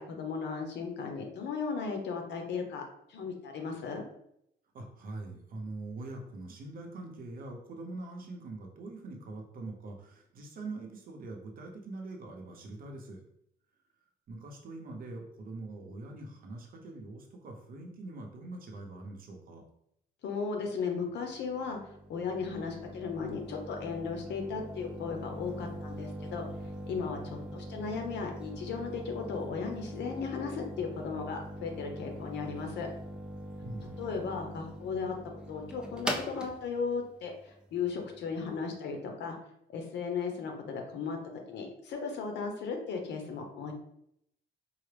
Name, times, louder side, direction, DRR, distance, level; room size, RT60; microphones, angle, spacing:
voice 1, 0.0-2.8 3.1-4.0 20.2-21.8 22.1-26.5 26.9-32.9 34.0-35.1 35.5-39.4 39.7-41.2 41.5-43.7, left 5 dB, 85° left, 3 dB, 0.8 m, -36 dB
voice 2, 4.7-13.2 14.3-19.6 33.6-34.0, right 2 dB, 55° right, 2 dB, 0.7 m, -43 dB
sound 1, 21.0-38.6, equal, 5° right, 0.3 m, -42 dB
4.7 x 2.0 x 3.3 m, 0.75 s
cardioid pair, 155°, 17 cm